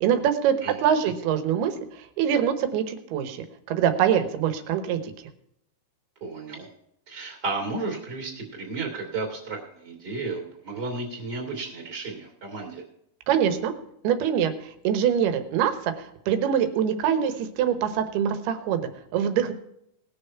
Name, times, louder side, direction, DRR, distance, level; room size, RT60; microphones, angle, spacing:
voice 1, 0.0-5.0 13.3-13.7 14.0-14.5 14.8-19.5, right 9 dB, 80° right, 9 dB, 3.1 m, -24 dB
voice 2, 0.6-1.1 6.2-6.7 7.1-12.8, right 3 dB, 25° right, 2 dB, 3.1 m, -33 dB
20.0 x 6.8 x 4.6 m, 0.76 s
omnidirectional pair, 4.5 m